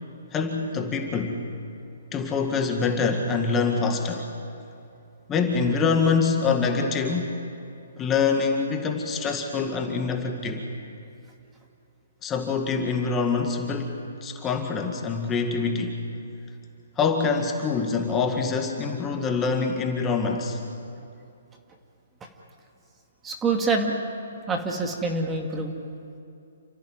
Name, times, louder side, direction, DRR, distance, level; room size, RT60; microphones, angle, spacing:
voice 1, 0.3-1.4 2.1-4.3 5.3-7.4 8.0-10.7 12.2-13.9 14.2-16.0 17.0-20.6, left 5 dB, 15° left, 3 dB, 2.0 m, -25 dB
voice 2, 23.2-24.0 24.5-25.7, right 3 dB, 15° right, 2 dB, 2.2 m, -26 dB
29.0 x 14.5 x 9.3 m, 2.6 s
hypercardioid pair, 145°, 0 cm